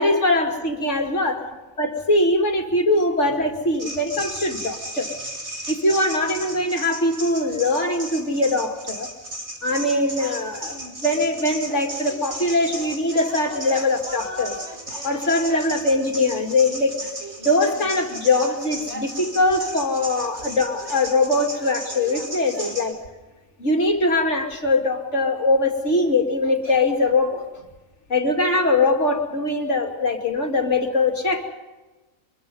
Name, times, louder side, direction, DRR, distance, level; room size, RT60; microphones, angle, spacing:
voice 1, 0.0-5.1 5.7-9.1 9.6-14.6 14.9-17.0 17.4-23.0 23.6-27.5 28.1-31.5, left 2 dB, 60° left, 3 dB, 2.9 m, -22 dB
sound 1, 3.7-22.9, right 1 dB, 55° right, 4.3 m, -35 dB
25.0 x 22.5 x 5.5 m, 1.2 s
omnidirectional pair, 1.4 m